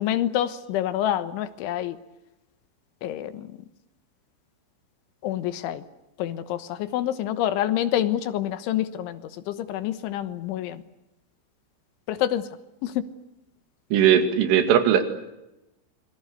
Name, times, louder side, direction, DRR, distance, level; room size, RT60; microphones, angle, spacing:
voice 1, 0.0-2.0 3.0-3.5 5.2-5.8 6.2-9.2 9.5-10.8 12.1-12.5 12.8-13.0, left 12 dB, 80° left, 12 dB, 3.6 m, -27 dB
voice 2, 13.9-15.0, right 9 dB, 85° right, 9 dB, 4.9 m, -19 dB
28.0 x 22.5 x 8.1 m, 0.92 s
omnidirectional pair, 5.6 m